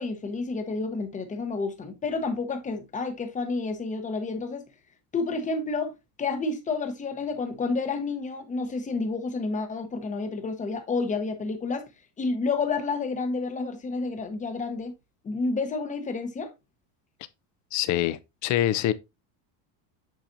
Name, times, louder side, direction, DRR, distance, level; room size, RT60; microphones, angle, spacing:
voice 1, 0.0-4.6 5.1-5.9 6.2-11.9 12.2-14.9 15.2-16.5, left 3 dB, 15° left, 0.8 m, -30 dB
voice 2, 17.7-18.9, left 13 dB, 40° left, 0.5 m, -25 dB
7.5 x 5.6 x 2.6 m
cardioid pair, 155°, 46 cm